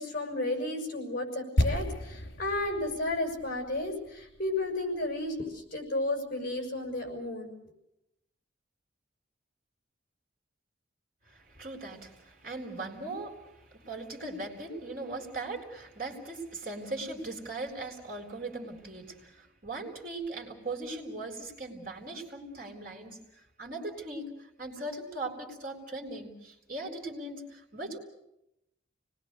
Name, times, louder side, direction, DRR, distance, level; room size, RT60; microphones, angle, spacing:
voice 1, 0.0-7.6, left 2 dB, 45° left, 3 dB, 6.4 m, -33 dB
sound 1, 1.6-5.5 5.8-5.9, left 1 dB, 75° left, 3.5 m, -33 dB
voice 2, 11.3-28.0, right 2 dB, 45° right, 1 dB, 4.0 m, -39 dB
29.5 x 20.0 x 6.8 m, 0.83 s
head